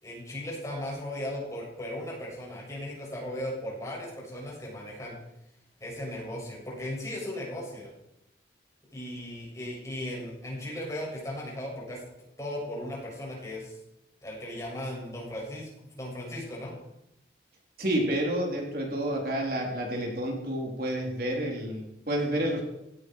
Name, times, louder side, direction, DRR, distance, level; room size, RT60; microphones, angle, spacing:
voice 1, 0.0-5.2 5.8-7.9 8.9-12.0 12.4-13.8 14.2-16.7, left 1 dB, 15° left, -3 dB, 7.3 m, -37 dB
voice 2, 17.8-22.6, right 1 dB, 55° right, -1 dB, 3.8 m, -29 dB
17.0 x 17.0 x 4.8 m, 0.85 s
head